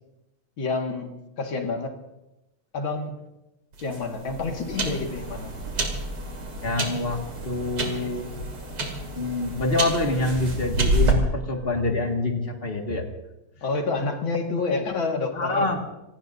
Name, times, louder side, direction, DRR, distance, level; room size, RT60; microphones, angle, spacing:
voice 1, 0.6-1.1 1.4-1.9 2.7-3.2 3.8-5.5 13.6-15.7, left 3 dB, 65° left, 2 dB, 2.7 m, -28 dB
sound 1, 3.7-11.1, right 2 dB, 75° right, 3.6 m, -29 dB
voice 2, 6.6-7.2 7.4-8.3 9.2-13.0 15.3-15.8, left 2 dB, 30° left, 2 dB, 2.1 m, -26 dB
26.5 x 18.5 x 2.7 m, 0.94 s
omnidirectional pair, 2.3 m